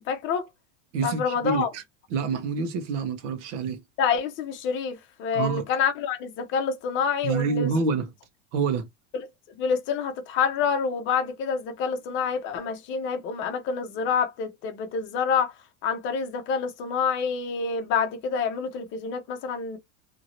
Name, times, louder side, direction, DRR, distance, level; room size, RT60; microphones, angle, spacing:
voice 1, 0.1-0.5 1.0-1.7 4.0-7.7 9.1-15.5 15.8-19.8, left 6 dB, 30° left, 0.7 m, -27 dB
voice 2, 0.9-1.8 2.1-3.8 5.3-5.6 7.2-8.1 8.5-8.9, right 5 dB, 70° right, 1.2 m, -27 dB
2.9 x 2.6 x 2.9 m
supercardioid pair, 165°, 37 cm